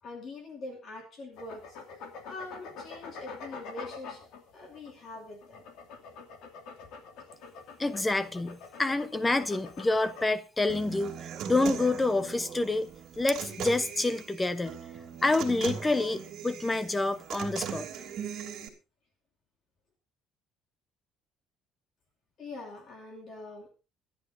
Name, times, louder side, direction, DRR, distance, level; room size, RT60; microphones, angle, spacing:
voice 1, 0.0-5.6 22.4-23.7, left 2 dB, 35° left, 2.5 m, -44 dB
sound 1, 1.4-10.3, left 5 dB, 70° left, 2.6 m, -45 dB
voice 2, 7.8-12.9 13.2-14.7 15.2-17.9, left 2 dB, 10° left, 0.8 m, -28 dB
Human voice / Acoustic guitar, 10.7-18.7, right 8 dB, 45° right, 2.8 m, -39 dB
25.0 x 11.0 x 2.7 m
cardioid pair, 180°, 0 cm